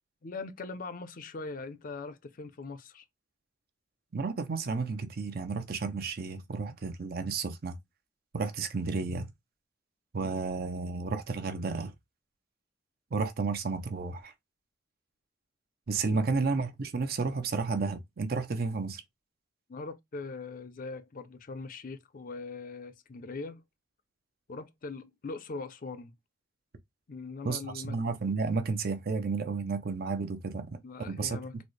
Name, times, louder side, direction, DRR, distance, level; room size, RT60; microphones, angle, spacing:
voice 1, 0.2-3.0 16.1-16.3 19.7-23.6 24.5-26.1 27.1-28.0 30.8-31.6, left 3 dB, 45° left, 0.5 m, -41 dB
voice 2, 4.1-7.8 8.3-9.3 10.1-11.9 13.1-14.3 15.9-19.0 27.4-30.8 31.1-31.4, right 4 dB, 55° right, 0.5 m, -32 dB
4.0 x 2.1 x 3.1 m
head